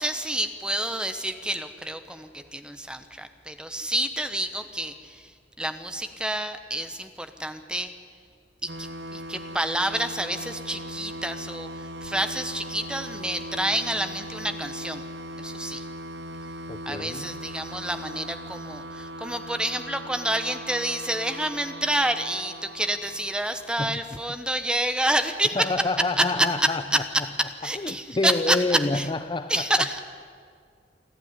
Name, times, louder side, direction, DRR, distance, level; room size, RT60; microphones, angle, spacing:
voice 1, 0.0-5.3 5.6-7.9 8.6-15.0 15.4-15.9 16.8-25.7 26.2-26.7 27.6-29.0 29.5-30.0, right 1 dB, 5° right, 8 dB, 1.1 m, -28 dB
sound 1, 8.7-24.1, equal, 70° right, 1.0 m, -39 dB
voice 2, 16.7-17.4 23.8-24.2 25.5-27.3 27.6-29.9, left 3 dB, 25° left, 11 dB, 0.6 m, -28 dB
28.5 x 11.5 x 9.9 m, 2.1 s
head